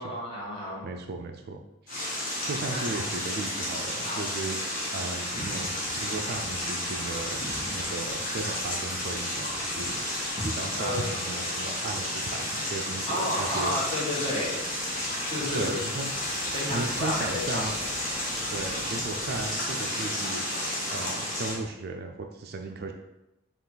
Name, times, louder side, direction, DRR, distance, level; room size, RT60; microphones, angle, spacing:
voice 1, 0.0-0.8 2.7-2.8 4.0-4.2 10.4-11.0 13.1-14.6 15.3-15.8 16.5-17.7, left 1 dB, 25° left, -5 dB, 1.2 m, -31 dB
voice 2, 0.8-1.6 2.4-7.4 7.7-10.0 10.4-13.8 15.5-16.1 16.7-17.8 18.5-20.5 20.9-22.9, right 3 dB, 50° right, 4 dB, 0.4 m, -36 dB
sound 1, 1.9-21.5, left 1 dB, 40° left, 1.5 m, -32 dB
sound 2, 8.6-19.5, equal, 5° left, 1.4 m, -49 dB
5.6 x 2.4 x 3.8 m, 0.92 s
head